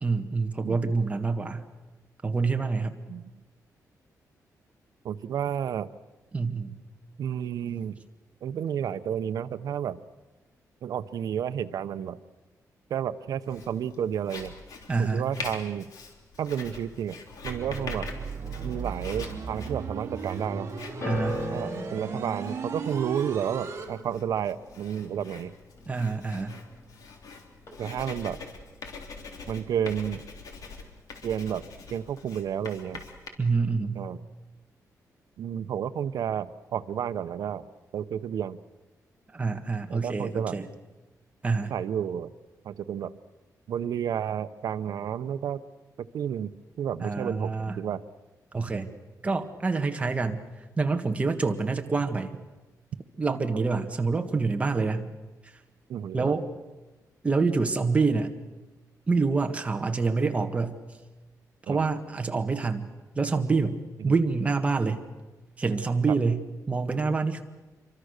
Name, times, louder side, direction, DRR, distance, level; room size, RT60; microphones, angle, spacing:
voice 1, 0.0-1.6 2.2-2.9 6.3-6.8 14.9-15.3 21.0-21.4 25.9-26.5 33.4-34.0 39.3-40.7 41.4-41.7 47.0-47.8 48.5-48.9 49.2-50.4 50.8-52.3 53.2-55.1 56.1-56.5 57.2-58.3 59.1-60.8 61.7-62.9 63.1-63.8 64.0-65.0 65.6-67.4, right 4 dB, 20° right, 6 dB, 1.6 m, -26 dB
voice 2, 5.0-5.9 7.2-8.0 8.4-10.0 10.8-12.2 12.9-14.5 15.0-15.9 16.4-17.2 17.4-18.1 18.6-20.7 21.5-25.5 27.8-28.4 29.5-30.2 31.2-31.6 31.9-33.0 33.9-34.2 35.4-37.7 37.9-38.6 39.9-40.5 41.7-42.3 42.6-43.1 43.7-45.6 46.0-46.5 46.8-48.0 55.9-56.4 61.7-61.8 64.0-64.2 66.1-66.2, right 9 dB, 75° right, 12 dB, 0.9 m, -31 dB
Writing, 13.5-33.3, left 4 dB, 65° left, 3.4 m, -44 dB
sound 1, 17.4-23.8, right 5 dB, 45° right, 3.1 m, -36 dB
sound 2, 21.0-27.3 27.5-28.2 28.9-29.0, left 2 dB, 45° left, 5.7 m, -40 dB
27.5 x 24.0 x 6.7 m, 1.1 s
wide cardioid pair, 170°, 6 cm